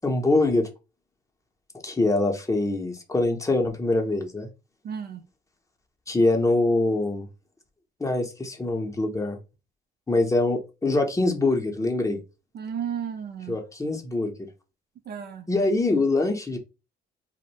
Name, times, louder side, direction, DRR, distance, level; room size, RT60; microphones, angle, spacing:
voice 1, 0.0-0.7 1.8-4.5 6.1-7.3 8.0-9.4 10.1-12.2 13.5-14.3 15.5-16.6, left 2 dB, 15° left, 0.6 m, -24 dB
voice 2, 4.8-5.2 12.1-12.2 12.5-13.6 15.1-15.5, right 8 dB, 55° right, 0.5 m, -33 dB
2.5 x 2.1 x 2.9 m
cardioid pair, 90°, 20 cm